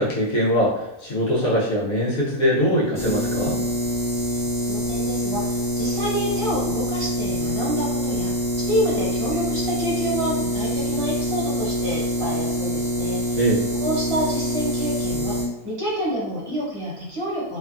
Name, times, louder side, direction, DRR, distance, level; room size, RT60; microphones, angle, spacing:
voice 1, 0.0-3.6 13.4-13.6, equal, 80° left, -5 dB, 1.4 m, -22 dB
sound 1, 2.9-15.4, equal, 5° left, 0.3 m, -25 dB
voice 2, 4.7-13.4 13.8-15.4 15.6-17.6, equal, 25° right, -6 dB, 0.8 m, -28 dB
3.1 x 2.2 x 2.5 m, 0.89 s
omnidirectional pair, 1.4 m